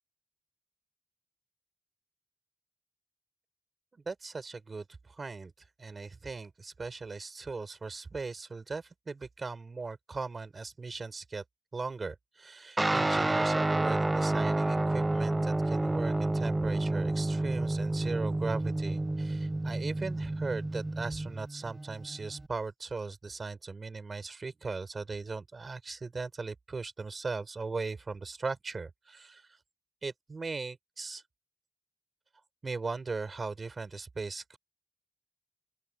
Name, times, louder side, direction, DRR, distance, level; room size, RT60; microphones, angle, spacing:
voice 1, 3.9-5.5 5.8-11.4 11.7-29.4 30.0-31.2 32.6-34.6, right 4 dB, 55° right, 6.1 m, -38 dB
Guitar, 12.8-22.5, right 2 dB, 25° right, 0.5 m, -30 dB
open air
cardioid pair, 60°, 0 cm